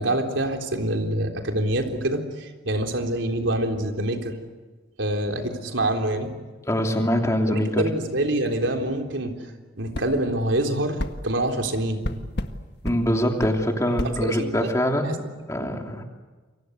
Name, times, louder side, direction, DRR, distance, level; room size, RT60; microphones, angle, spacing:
voice 1, 0.0-4.3 5.0-6.3 7.5-9.3 9.8-12.0 14.2-14.7 15.0-15.1 15.6-15.7, right 1 dB, 80° right, 4 dB, 3.8 m, -26 dB
voice 2, 6.7-7.8 12.8-15.2 15.5-16.0, equal, 15° left, 3 dB, 3.1 m, -23 dB
sound 1, 9.9-10.1 11.0-11.2 12.0-12.5 12.8-13.0 13.4-13.6 14.0-14.1, left 1 dB, 60° left, 1.7 m, -29 dB
29.0 x 24.0 x 8.0 m, 1.3 s
head